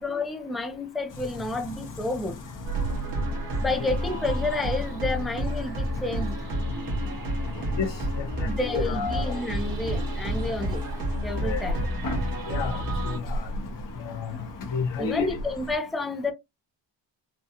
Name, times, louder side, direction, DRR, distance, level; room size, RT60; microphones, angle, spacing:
voice 1, 0.0-2.4 3.6-6.4 8.4-10.9 11.2-11.9 15.0-16.3, left 2 dB, ahead, 0.5 m, -30 dB
sound 1, 1.1-15.8, left 1 dB, 45° left, 1.0 m, -38 dB
sound 2, 2.7-13.2, right 1 dB, 50° right, 1.6 m, -30 dB
voice 2, 8.2-9.4 11.4-11.6 12.5-13.5 14.0-14.3 14.7-15.3, left 6 dB, 75° left, 0.9 m, -31 dB
4.0 x 2.3 x 2.8 m
wide cardioid pair, 165°, 44 cm